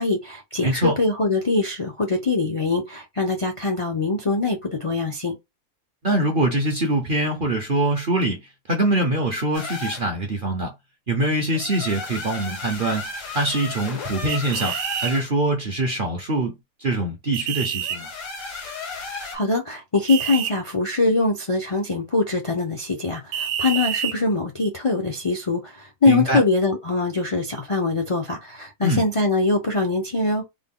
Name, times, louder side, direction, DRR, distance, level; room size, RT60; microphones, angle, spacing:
voice 1, 0.0-5.4 19.3-30.5, left 3 dB, 45° left, 0.4 m, -23 dB
voice 2, 0.6-1.0 6.0-8.4 8.7-10.7 11.1-16.5 16.8-18.1 26.1-26.4 28.8-29.0, right 1 dB, 50° right, 0.6 m, -23 dB
sound 1, 9.5-10.1 11.5-15.3 17.8-19.4, left 4 dB, 80° left, 1.8 m, -34 dB
sound 2, 14.3-15.1 17.3-18.0 20.1-20.5 23.3-24.2, right 9 dB, 75° right, 1.1 m, -27 dB
3.6 x 2.2 x 3.7 m
omnidirectional pair, 1.7 m